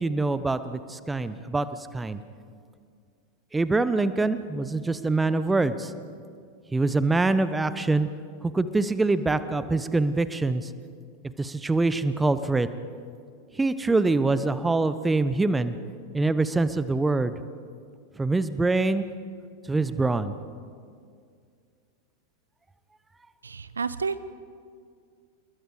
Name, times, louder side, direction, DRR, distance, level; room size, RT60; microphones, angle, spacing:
voice 1, 0.0-2.2 3.5-5.9 6.7-8.1 8.4-10.7 11.4-12.7 13.5-15.7 16.1-17.3 18.2-19.1 19.7-20.3, right 3 dB, 10° right, 13 dB, 0.9 m, -24 dB
voice 2, 23.4-24.2, right 5 dB, 75° right, 15 dB, 0.7 m, -30 dB
28.5 x 21.5 x 4.9 m, 2.2 s
figure-of-eight pair, 90°, 0 cm